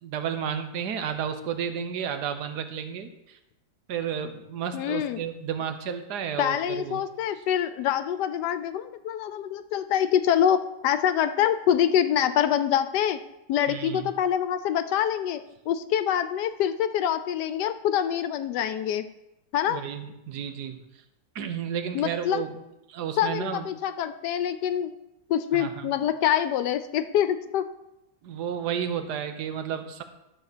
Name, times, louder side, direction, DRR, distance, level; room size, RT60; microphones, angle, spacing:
voice 1, 0.0-3.4 3.9-7.0 13.7-14.1 19.7-20.8 21.3-22.5 22.9-23.7 25.5-25.9 28.2-30.0, right 8 dB, 70° right, 9 dB, 1.4 m, -32 dB
voice 2, 4.7-5.2 6.4-13.2 13.5-15.4 15.7-19.1 19.5-19.8 21.9-22.4 23.2-24.9 25.3-27.6, left 10 dB, 75° left, 11 dB, 1.1 m, -25 dB
12.0 x 4.4 x 6.6 m, 0.89 s
omnidirectional pair, 1.9 m